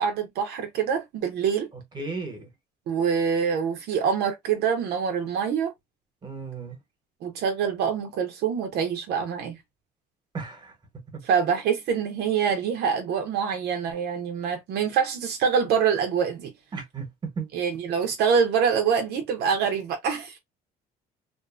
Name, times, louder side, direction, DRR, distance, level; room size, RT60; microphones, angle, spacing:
voice 1, 0.0-1.7 2.9-5.7 7.2-9.6 11.2-16.5 17.5-20.4, right 7 dB, 75° right, 0.7 m, -25 dB
voice 2, 1.9-2.5 6.2-6.8 10.3-10.7 11.1-11.2 16.7-17.5, right 4 dB, 25° right, 1.1 m, -34 dB
2.6 x 2.3 x 2.4 m
cardioid pair, 110°, 17 cm